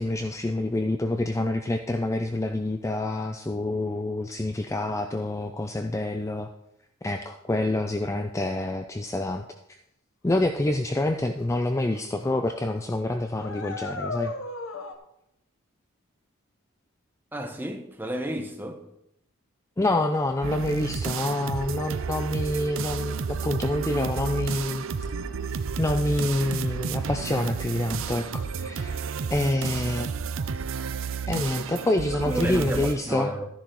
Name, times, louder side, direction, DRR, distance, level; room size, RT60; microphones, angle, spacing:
voice 1, 0.0-6.5 7.0-9.8 10.2-14.3 19.8-24.8 25.8-29.0 29.3-30.1 31.3-33.3, left 1 dB, 15° left, 0.4 m, -27 dB
sound 1, 11.4-11.5 11.9-12.2 12.5-12.6 13.4-14.9, left 3 dB, 75° left, 1.0 m, -34 dB
voice 2, 17.3-18.9 32.1-33.5, equal, 10° right, 0.8 m, -32 dB
sound 2, 20.4-32.9, right 6 dB, 70° right, 0.5 m, -31 dB
13.0 x 10.0 x 3.0 m
head